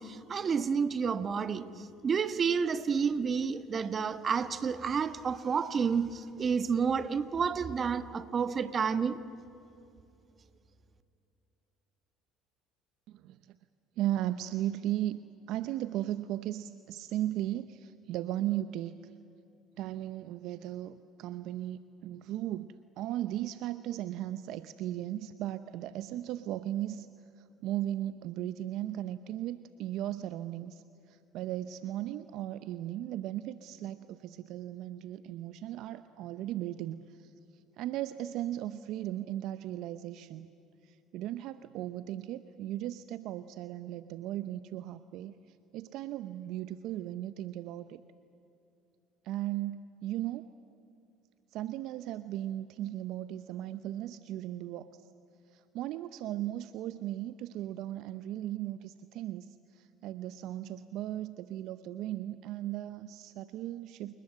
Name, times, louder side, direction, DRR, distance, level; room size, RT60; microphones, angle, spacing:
voice 1, 0.0-9.2, right 6 dB, 40° right, 1.3 m, -30 dB
voice 2, 13.1-13.6 14.0-19.0 19.8-27.1 27.4-40.5 40.8-48.0 49.2-50.4 51.5-55.1 55.5-64.1, right 13 dB, 65° right, 0.7 m, -37 dB
29.5 x 20.0 x 7.8 m
hypercardioid pair, 70°, 0 cm